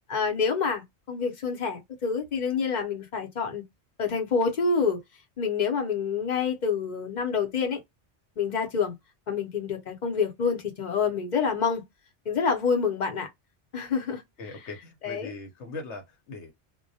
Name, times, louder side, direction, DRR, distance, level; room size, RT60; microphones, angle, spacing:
voice 1, 0.1-3.6 4.0-5.0 5.4-7.8 8.4-8.9 9.3-11.8 12.3-13.3 13.7-14.2 14.5-14.6 15.0-15.3, left 5 dB, 45° left, 0.8 m, -27 dB
voice 2, 14.4-16.5, left 3 dB, 80° left, 1.0 m, -40 dB
2.2 x 2.1 x 2.6 m
omnidirectional pair, 1.2 m